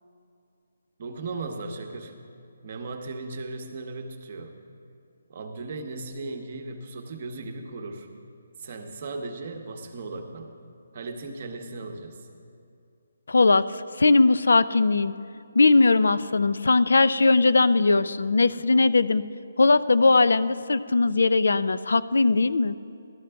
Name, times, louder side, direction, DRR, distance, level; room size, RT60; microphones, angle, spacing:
voice 1, 1.0-2.1 2.6-4.5 5.3-8.1 8.6-10.5 10.9-12.2, right 3 dB, 35° right, 5 dB, 0.8 m, -36 dB
voice 2, 13.3-15.1 15.5-19.2 19.6-22.8, left 3 dB, 80° left, 17 dB, 0.3 m, -20 dB
13.5 x 12.5 x 3.4 m, 2.5 s
hypercardioid pair, 175°, 0 cm